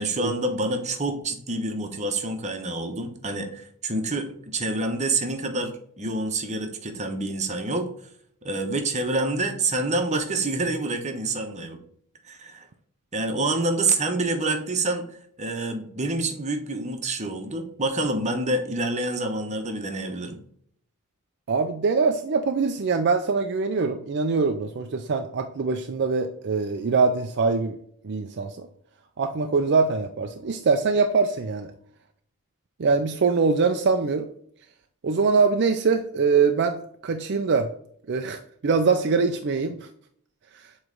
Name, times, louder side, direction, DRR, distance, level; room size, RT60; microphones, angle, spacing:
voice 1, 0.0-7.9 8.4-11.8 12.2-12.7 13.1-15.0 15.4-20.4, right 2 dB, 30° right, 5 dB, 1.0 m, -27 dB
voice 2, 21.5-27.8 28.0-28.7 29.2-31.7 32.8-34.3 35.0-37.7 38.1-39.9, right 4 dB, 50° right, 6 dB, 0.5 m, -23 dB
7.8 x 3.2 x 3.8 m, 0.63 s
head